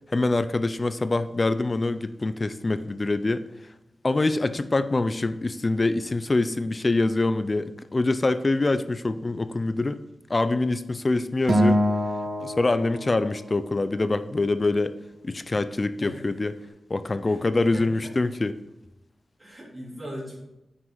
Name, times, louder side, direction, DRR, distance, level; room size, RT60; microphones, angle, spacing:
voice 1, 0.1-3.4 4.0-10.0 10.3-11.8 12.4-14.9 15.2-16.5 16.9-18.5, left 2 dB, 30° left, 12 dB, 0.4 m, -25 dB
Acoustic guitar, 11.5-13.9, equal, 60° right, 1.3 m, -25 dB
voice 2, 17.2-18.1 19.4-20.5, equal, 15° right, -7 dB, 3.3 m, -40 dB
9.2 x 6.2 x 4.0 m, 0.93 s
wide cardioid pair, 135°, 0 cm